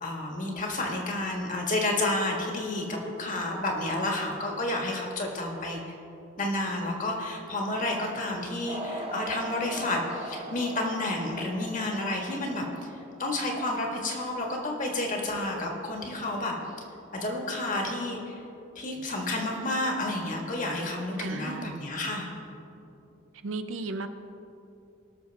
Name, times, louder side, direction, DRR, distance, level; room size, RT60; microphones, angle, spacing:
voice 1, 0.0-5.9 6.4-16.5 17.2-18.4 18.8-22.3, left 2 dB, 40° left, 0 dB, 1.6 m, -30 dB
sound 1, 8.7-13.3, right 1 dB, 30° right, 1.1 m, -40 dB
voice 2, 21.2-21.8 23.4-24.1, right 3 dB, 80° right, 9 dB, 0.6 m, -34 dB
19.5 x 6.5 x 3.5 m, 2.8 s
head